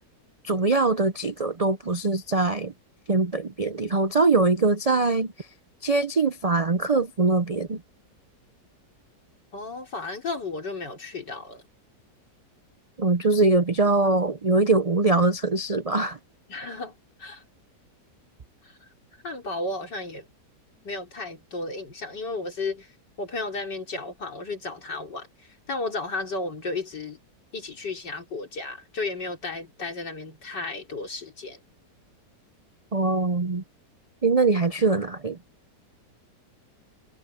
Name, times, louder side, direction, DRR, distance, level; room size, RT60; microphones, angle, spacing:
voice 1, 0.4-2.7 3.1-5.3 5.8-7.8 13.0-16.2 32.9-33.6 34.2-35.4, right 3 dB, 75° right, 0.3 m, -22 dB
voice 2, 9.5-11.6 16.5-16.9 17.2-17.4 18.6-18.7 19.2-20.3 20.8-22.9 23.2-27.2 27.5-31.6, left 3 dB, 80° left, 4.6 m, -33 dB
omnidirectional pair, 1.8 m